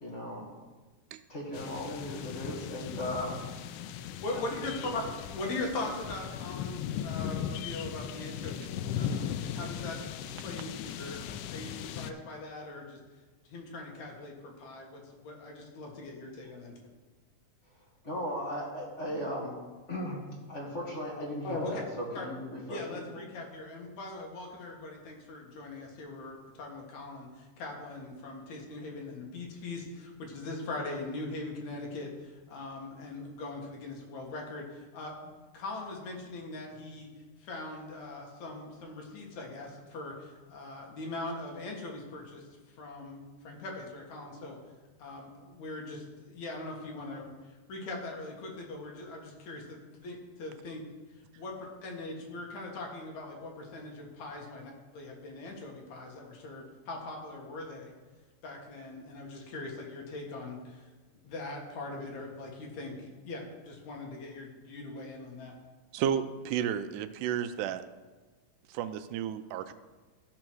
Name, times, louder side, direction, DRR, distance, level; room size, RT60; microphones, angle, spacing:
voice 1, 0.0-0.5 1.3-3.4 4.3-4.4 4.8-5.0 18.0-19.5 19.9-20.2 20.5-23.2, equal, 30° left, -3 dB, 1.6 m, -37 dB
sound 1, 1.5-12.1, left 9 dB, 80° left, 2.1 m, -38 dB
voice 2, 4.2-9.2 9.5-10.0 10.4-13.0 13.4-16.8 21.4-21.8 22.1-22.3 22.7-37.1 37.4-44.6 45.0-50.8 51.4-51.5 51.8-57.9 58.4-60.9 61.2-65.5, left 2 dB, 65° left, 0 dB, 2.8 m, -41 dB
voice 3, 65.9-67.8 68.7-69.7, right 9 dB, 80° right, 11 dB, 2.0 m, -32 dB
14.0 x 4.8 x 6.1 m, 1.3 s
omnidirectional pair, 3.8 m